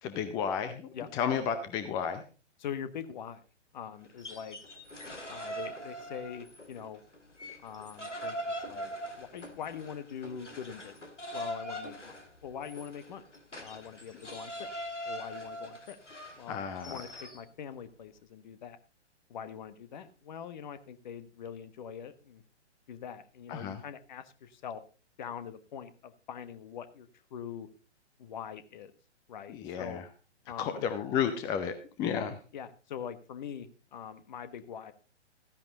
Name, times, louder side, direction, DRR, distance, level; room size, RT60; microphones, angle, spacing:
voice 1, 0.0-2.2 16.5-17.0 23.5-23.8 29.5-30.0 30.6-32.3, left 7 dB, 10° left, 11 dB, 0.6 m, -32 dB
voice 2, 2.6-3.4 3.7-4.6 5.3-7.0 7.6-8.4 8.7-8.9 9.2-11.0 11.3-12.1 12.4-13.2 13.6-14.7 15.1-16.0 16.4-18.8 19.3-22.4 22.9-24.8 25.2-27.7 28.2-28.9 29.3-30.0 30.4-30.8 32.0-32.3 32.5-34.9, left 8 dB, 40° left, 13 dB, 1.3 m, -43 dB
sound 1, 4.1-6.8 7.1-17.4, equal, 85° left, 2.7 m, -42 dB
14.5 x 10.5 x 3.8 m, 0.35 s
figure-of-eight pair, 125°, 35 cm